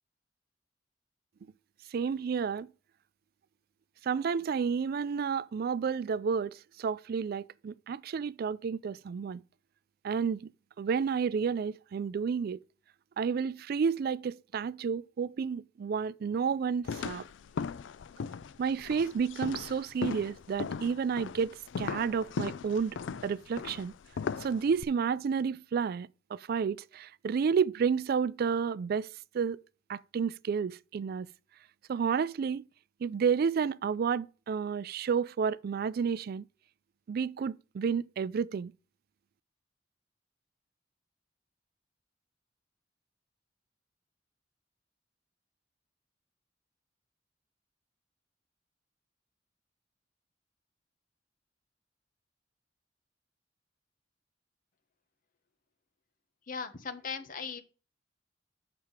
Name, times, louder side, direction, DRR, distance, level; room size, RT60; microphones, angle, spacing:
voice 1, 1.9-2.7 4.0-9.4 10.0-10.5 10.8-12.6 13.2-17.3 18.6-23.0 23.2-23.9 24.4-29.1 29.3-29.6 29.9-31.3 31.9-32.6 33.0-36.5 37.1-38.7, right 6 dB, 55° right, 0.3 m, -31 dB
sound 1, 16.8-24.8, left 6 dB, 80° left, 0.4 m, -38 dB
voice 2, 56.5-57.6, left 5 dB, 50° left, 1.2 m, -38 dB
7.4 x 5.9 x 4.7 m
head